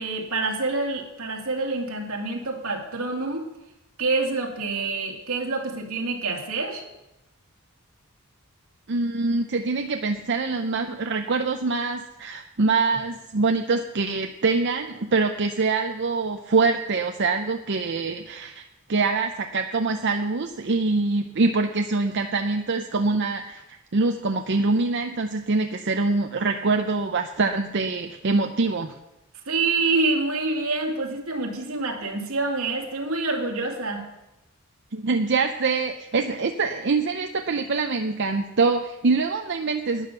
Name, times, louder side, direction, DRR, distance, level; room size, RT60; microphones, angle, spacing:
voice 1, 0.0-3.5 4.0-6.8 29.5-34.0, right 3 dB, 80° right, 1 dB, 2.6 m, -27 dB
voice 2, 8.9-18.6 18.9-29.0 34.9-40.1, right 3 dB, 55° right, 5 dB, 0.7 m, -24 dB
12.0 x 10.0 x 6.8 m, 0.94 s
head